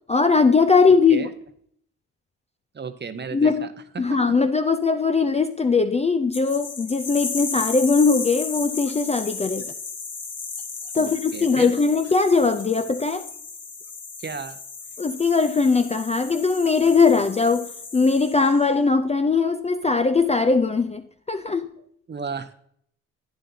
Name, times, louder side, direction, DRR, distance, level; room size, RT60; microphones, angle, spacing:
voice 1, 0.1-1.3 3.3-9.7 10.9-13.3 15.0-21.7, left 4 dB, 20° left, 8 dB, 0.5 m, -20 dB
voice 2, 0.9-1.3 2.7-3.7 3.9-4.2 11.0-11.7 14.2-14.6 21.8-22.5, right 5 dB, 30° right, 11 dB, 0.8 m, -34 dB
sound 1, 6.3-18.6, left 4 dB, 40° left, 1.6 m, -35 dB
10.5 x 9.0 x 2.8 m, 0.67 s
supercardioid pair, 70°, 36 cm